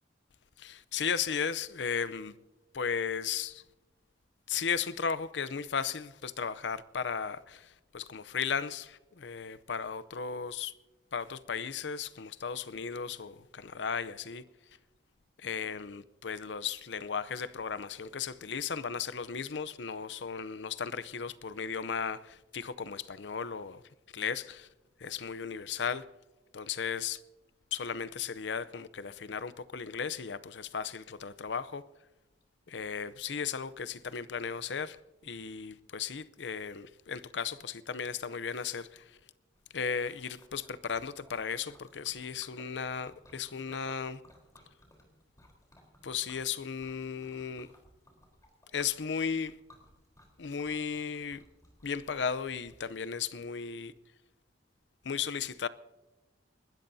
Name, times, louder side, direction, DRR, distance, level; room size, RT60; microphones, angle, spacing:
voice 1, 0.6-2.3 2.7-3.6 4.5-10.7 11.1-14.4 15.4-23.8 24.1-24.7 25.0-26.0 26.5-27.2 27.7-31.8 32.7-35.0 35.2-39.2 39.7-44.2 46.0-47.7 48.7-49.6 50.4-51.4 51.8-53.9 55.0-55.7, left 6 dB, 80° left, 0.6 m, -35 dB
Liquid, 39.5-52.7, left 1 dB, 20° left, 3.9 m, -60 dB
29.5 x 13.0 x 2.7 m
head